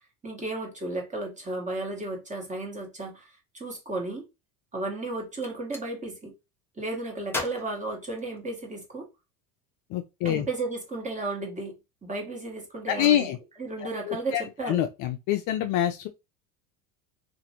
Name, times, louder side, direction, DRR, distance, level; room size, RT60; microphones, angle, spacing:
voice 1, 0.2-4.2 4.7-6.3 6.8-9.1 10.2-11.7 12.0-13.3 13.6-14.8, right 2 dB, 15° right, 1.3 m, -34 dB
Gunshot gunfire, 5.3-5.9 7.3-8.8, left 2 dB, 5° left, 0.7 m, -37 dB
voice 2, 9.9-10.5 12.9-13.4 14.1-16.1, left 11 dB, 50° left, 0.5 m, -26 dB
2.9 x 2.5 x 2.8 m
supercardioid pair, 105°, 44 cm